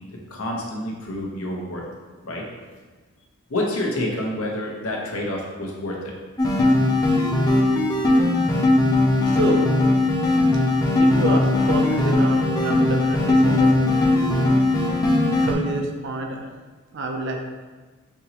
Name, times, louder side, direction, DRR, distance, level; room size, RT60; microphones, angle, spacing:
voice 1, 0.3-1.8 2.2-2.4 3.5-6.1, left 1 dB, 70° left, -2 dB, 0.8 m, -28 dB
sound 1, 6.4-15.5, left 2 dB, 15° left, 0.4 m, -19 dB
voice 2, 9.3-9.7 11.0-13.7 15.4-16.5 16.9-17.4, right 2 dB, 50° right, 3 dB, 0.5 m, -27 dB
5.5 x 2.9 x 2.8 m, 1.4 s
head